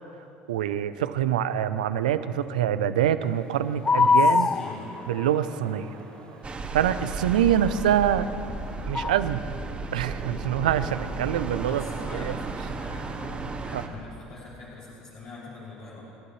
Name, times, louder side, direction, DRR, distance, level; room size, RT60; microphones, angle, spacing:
voice 1, 0.5-4.5 5.1-5.9 6.7-8.3 8.9-9.4 9.9-11.8 12.1-12.3 13.7-13.8, right 10 dB, 85° right, 12 dB, 0.6 m, -25 dB
sound 1, 3.6-14.1, right 5 dB, 60° right, 2.5 m, -49 dB
sound 2, 3.8-5.2 8.9-9.2, left 4 dB, 20° left, 0.3 m, -21 dB
voice 2, 3.9-4.9 7.0-7.5 11.6-12.4 12.7-13.3 13.6-16.0, left 3 dB, 70° left, -10 dB, 3.9 m, -43 dB
sound 3, 6.4-13.9, right 3 dB, 30° right, 1.9 m, -34 dB
29.5 x 11.5 x 3.2 m, 2.7 s
hypercardioid pair, 70°, 4 cm